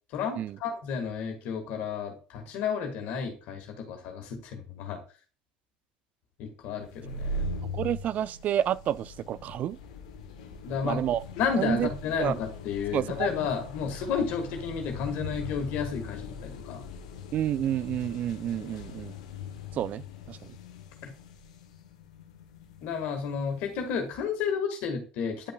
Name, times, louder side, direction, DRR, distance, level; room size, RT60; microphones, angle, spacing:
voice 1, 0.1-5.0 6.4-7.4 10.6-11.0 11.4-16.8 22.8-25.5, left 6 dB, 65° left, 1.7 m, -32 dB
sound 1, 6.8-24.2, left 3 dB, 80° left, 1.0 m, -41 dB
voice 2, 7.7-9.8 10.8-11.2 11.6-11.9 12.2-12.3 12.9-13.3 17.3-19.1 19.7-20.6, right 11 dB, 45° right, 0.3 m, -29 dB
9.8 x 5.4 x 2.3 m
hypercardioid pair, 75°, 4 cm